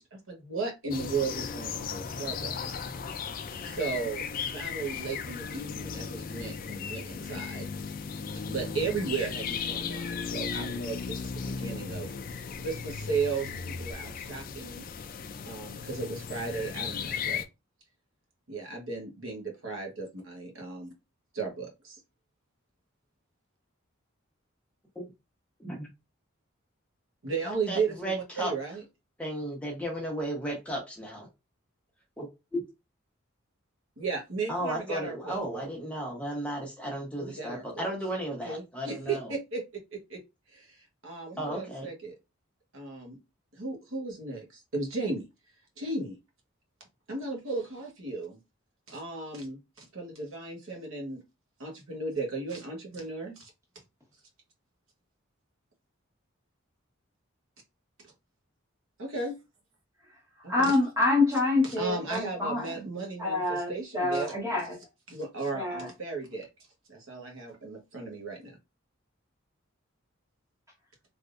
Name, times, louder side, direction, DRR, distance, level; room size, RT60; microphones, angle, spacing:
voice 1, 0.0-2.5 3.6-4.2 4.5-7.7 8.5-12.1 12.6-14.8 15.4-17.4 18.5-20.9 21.3-22.0 27.2-28.8 34.0-35.7 37.2-37.9 38.4-40.2 40.5-42.1 42.7-43.2 43.5-45.2 45.8-46.2 47.1-48.4 48.9-51.2 51.6-53.5 59.0-59.4 60.4-60.7 61.6-64.3 65.1-66.5 66.9-68.6, right 4 dB, 75° right, 1.1 m, -35 dB
sound 1, 0.9-17.4, left 6 dB, 40° left, 0.3 m, -36 dB
voice 2, 27.5-28.5 29.2-31.3 32.2-32.6 34.5-39.3 41.4-41.9, right 1 dB, 5° left, 0.9 m, -34 dB
voice 3, 60.5-62.8 63.2-64.8 65.5-65.9, left 2 dB, 15° right, 1.3 m, -27 dB
3.4 x 2.6 x 2.5 m
head